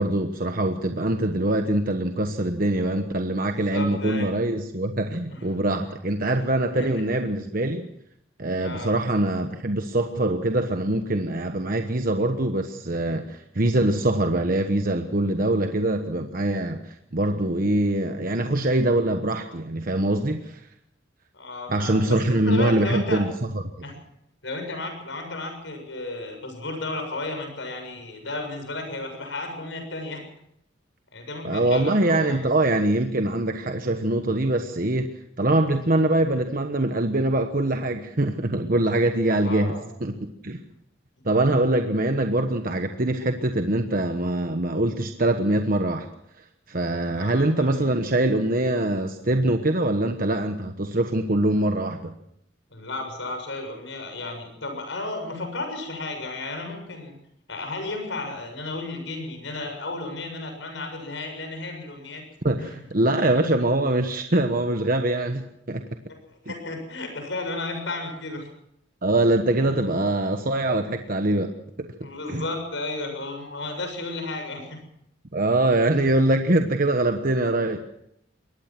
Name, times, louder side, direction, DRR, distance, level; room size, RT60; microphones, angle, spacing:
voice 1, 0.0-7.9 8.4-20.6 21.7-23.6 31.4-35.1 35.4-39.7 40.0-40.6 41.2-46.1 46.7-52.1 62.4-65.8 66.5-66.6 69.0-71.5 71.8-71.9 72.3-72.4 75.3-77.8, right 1 dB, 50° right, 6 dB, 1.2 m, -23 dB
voice 2, 3.5-4.3 5.3-5.4 6.7-6.9 8.6-8.9 21.3-23.2 23.8-24.0 24.4-30.2 31.1-32.5 39.4-39.9 47.1-48.0 52.7-57.1 57.5-62.2 62.6-62.7 63.1-63.3 66.4-68.5 69.5-69.8 72.0-74.8, left 2 dB, 75° left, 5 dB, 7.1 m, -33 dB
23.0 x 18.5 x 6.1 m, 0.75 s
head